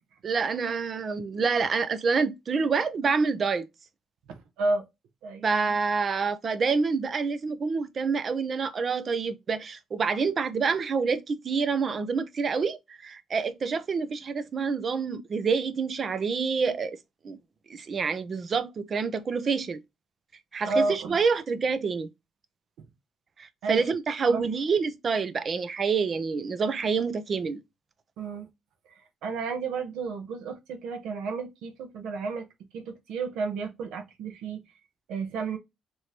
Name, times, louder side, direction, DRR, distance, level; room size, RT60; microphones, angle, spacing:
voice 1, 0.2-3.7 5.4-17.0 17.2-17.4 17.7-19.8 20.5-22.1 23.4-27.6, right 5 dB, 45° right, 0.6 m, -27 dB
voice 2, 4.3-4.8 5.2-5.7 20.6-21.2 23.6-23.8 24.3-24.5 28.2-28.5 29.2-32.5 32.7-34.6 35.1-35.6, right 3 dB, 90° right, 0.9 m, -31 dB
4.9 x 3.1 x 2.7 m
cardioid pair, 90°, 0 cm